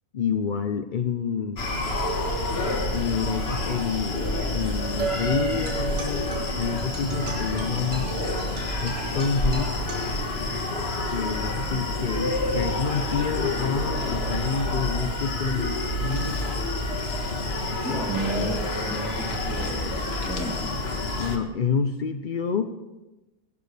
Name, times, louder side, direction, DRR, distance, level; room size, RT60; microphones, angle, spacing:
voice 1, 0.1-1.6 2.9-4.3 4.5-8.1 8.8-9.8 11.1-16.5 17.9-18.0 21.2-22.6, left 6 dB, 70° left, 8 dB, 0.4 m, -28 dB
Screaming, 1.6-21.4, left 2 dB, 40° left, 1.6 m, -28 dB
sound 1, 5.0-9.7, right 7 dB, 65° right, 0.8 m, -35 dB
sound 2, 5.7-10.7, right 4 dB, 80° right, 2.4 m, -41 dB
voice 2, 17.8-20.9, right 1 dB, ahead, -3 dB, 3.2 m, -32 dB
20.0 x 11.5 x 3.4 m, 1.0 s
omnidirectional pair, 1.7 m